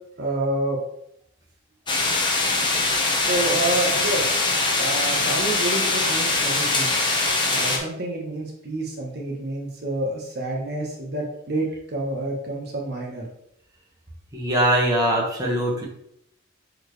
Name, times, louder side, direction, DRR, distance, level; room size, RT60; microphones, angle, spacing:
voice 1, 0.2-0.8 3.2-4.3 4.8-7.1 7.5-13.2, right 2 dB, 55° right, -2 dB, 1.2 m, -28 dB
sound 1, 1.9-7.8, left 3 dB, 25° left, 1.0 m, -22 dB
voice 2, 14.3-15.8, right 1 dB, 20° right, -3 dB, 1.4 m, -21 dB
6.5 x 4.5 x 3.2 m, 0.74 s
head